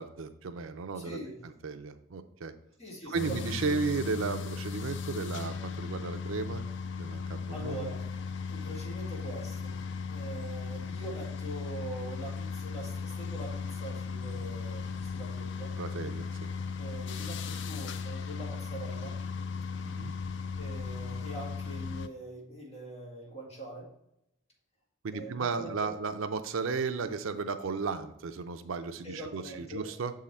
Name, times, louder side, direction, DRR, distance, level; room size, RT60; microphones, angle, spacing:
voice 1, 0.0-1.2 1.4-2.5 3.1-6.7 7.0-7.9 15.8-16.5 19.8-20.1 25.0-30.1, right 4 dB, 75° right, 10 dB, 0.5 m, -34 dB
voice 2, 0.9-1.4 2.8-3.9 7.5-8.0 8.5-9.8 10.1-15.7 16.8-19.2 20.6-23.9 25.1-25.9 29.0-29.9, right 1 dB, 30° left, -4 dB, 2.1 m, -43 dB
sound 1, 3.1-22.1, left 5 dB, 60° left, 0.4 m, -37 dB
6.9 x 3.7 x 4.2 m, 0.81 s
head